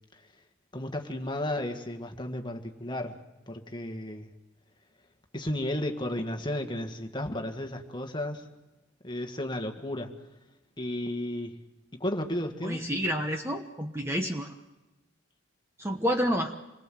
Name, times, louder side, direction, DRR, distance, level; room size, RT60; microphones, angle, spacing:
voice 1, 0.7-3.2 3.5-4.3 5.3-8.4 9.0-10.1 10.8-11.5 12.0-12.9, left 1 dB, 20° left, 4 dB, 1.7 m, -33 dB
voice 2, 12.6-14.6 15.8-16.5, equal, 10° right, 4 dB, 1.1 m, -29 dB
27.0 x 21.5 x 7.7 m, 0.99 s
head